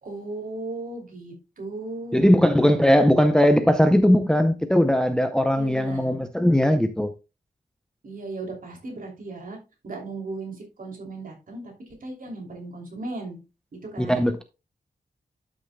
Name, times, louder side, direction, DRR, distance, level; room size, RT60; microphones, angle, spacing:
voice 1, 0.0-3.1 5.5-6.2 8.0-9.6 9.8-11.6 12.0-13.4 13.7-14.3, right 2 dB, 55° right, 2.9 m, -36 dB
voice 2, 2.1-7.1 14.0-14.4, equal, 5° left, 0.5 m, -19 dB
12.0 x 6.3 x 2.2 m
wide cardioid pair, 165°, 17 cm